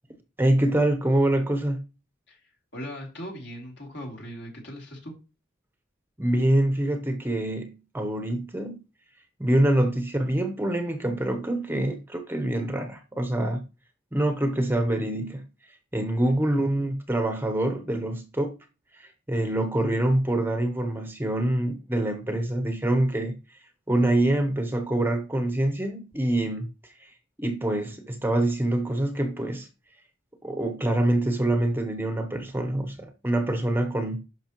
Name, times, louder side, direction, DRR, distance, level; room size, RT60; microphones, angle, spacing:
voice 1, 0.4-1.8 6.2-8.8 9.4-13.6 14.1-15.4 15.9-18.6 18.9-23.6 23.9-27.1 27.4-29.7 30.4-34.2, right 1 dB, 10° right, 0.8 m, -25 dB
voice 2, 2.7-5.1, equal, 60° left, 3.0 m, -39 dB
11.0 x 5.5 x 3.0 m
head